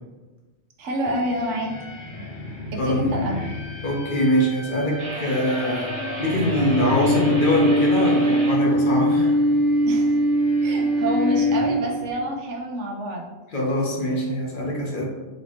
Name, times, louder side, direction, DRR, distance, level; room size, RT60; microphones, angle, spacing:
voice 1, 0.8-1.7 2.7-3.4 9.9-10.2 10.6-13.3, right 1 dB, 85° right, 0 dB, 1.0 m, -27 dB
sound 1, 1.0-12.1, equal, 70° left, 1.8 m, -24 dB
voice 2, 3.8-5.9 6.2-9.3 13.5-15.0, equal, 50° left, -2 dB, 0.9 m, -23 dB
sound 2, 5.0-8.6, equal, 30° right, 0.6 m, -32 dB
4.0 x 2.8 x 3.0 m, 1.2 s
omnidirectional pair, 1.2 m